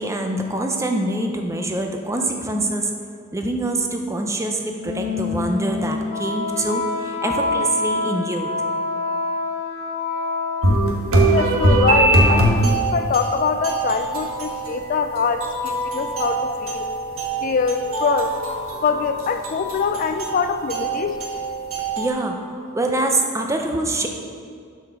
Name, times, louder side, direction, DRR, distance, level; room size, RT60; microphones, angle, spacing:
voice 1, 0.0-2.9 3.3-8.5 22.0-24.1, right 2 dB, 15° right, 3 dB, 0.6 m, -25 dB
Wind instrument woodwind instrument, 4.7-10.9, left 3 dB, 75° left, 1.5 m, -26 dB
sound 1, 10.6-22.1, right 2 dB, 90° right, 1.2 m, -22 dB
voice 2, 11.3-12.5 12.8-16.9 17.4-18.4 18.8-21.2, left 5 dB, 40° left, 8 dB, 0.3 m, -23 dB
7.9 x 5.0 x 5.9 m, 2.2 s
head